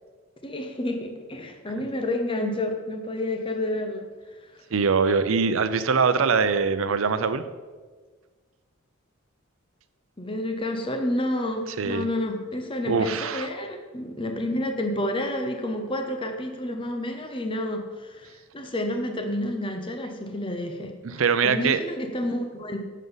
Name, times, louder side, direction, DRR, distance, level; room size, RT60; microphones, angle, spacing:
voice 1, 0.4-4.6 10.2-22.8, left 1 dB, 25° left, 5 dB, 0.8 m, -30 dB
voice 2, 4.7-7.4 11.8-12.1 12.9-13.5 21.0-21.8, right 5 dB, 75° right, 12 dB, 0.6 m, -23 dB
10.5 x 7.5 x 4.0 m, 1.4 s
head